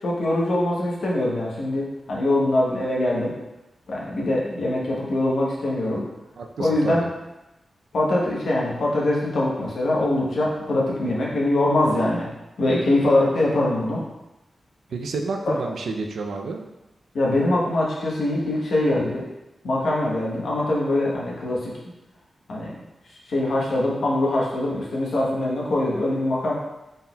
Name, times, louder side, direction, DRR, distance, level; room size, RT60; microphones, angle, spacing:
voice 1, 0.0-3.3 3.9-6.0 6.6-7.0 7.9-12.3 12.6-14.0 15.4-15.5 17.1-19.3 19.6-21.7 22.5-22.8 23.3-26.6, left 1 dB, 75° left, -4 dB, 0.9 m, -23 dB
voice 2, 6.4-7.1 14.9-16.6, right 3 dB, 90° right, 3 dB, 0.4 m, -30 dB
4.1 x 3.8 x 2.2 m, 0.97 s
wide cardioid pair, 165°, 0 cm